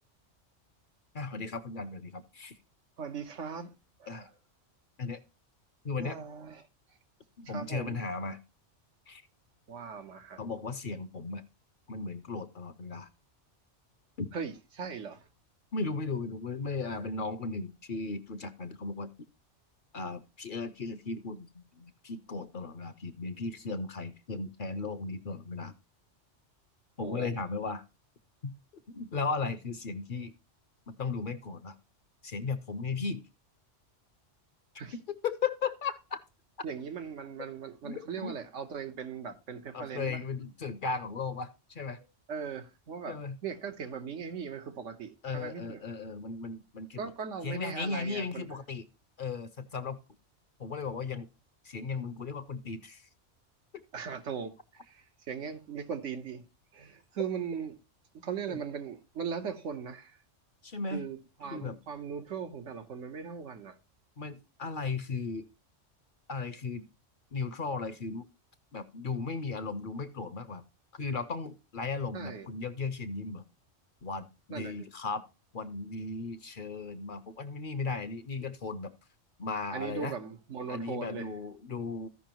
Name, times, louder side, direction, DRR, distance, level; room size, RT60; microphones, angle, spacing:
voice 1, 1.1-2.6 4.1-4.3 5.0-5.2 5.8-6.2 7.4-8.4 9.1-9.2 10.4-11.4 11.9-13.1 14.2-14.3 15.7-19.1 19.9-25.7 27.0-27.8 28.4-28.5 28.9-30.3 30.9-31.8 32.2-33.2 34.9-36.2 37.8-38.4 39.7-42.0 43.1-43.4 45.2-47.0 47.4-48.9 49.2-50.0 50.6-51.3 51.6-53.1 58.5-58.6 60.6-61.0 61.5-61.8 64.2-65.5 66.3-66.9 67.3-68.3 68.7-70.6 70.9-73.4 74.0-75.2 75.5-78.9 79.4-80.2 80.7-82.1, left 4 dB, 55° left, 0.7 m, -36 dB
voice 2, 3.0-3.7 4.0-4.3 6.0-6.6 7.5-8.0 9.7-10.4 14.3-15.2 27.0-27.3 34.8-34.9 36.6-40.2 42.3-43.2 43.4-45.8 47.0-48.5 53.9-54.5 54.9-56.4 56.7-57.7 58.2-60.2 60.9-63.7 72.1-72.5 74.5-74.8 79.7-81.3, right 6 dB, 80° right, 1.3 m, -39 dB
15.0 x 5.5 x 2.9 m
omnidirectional pair, 1.2 m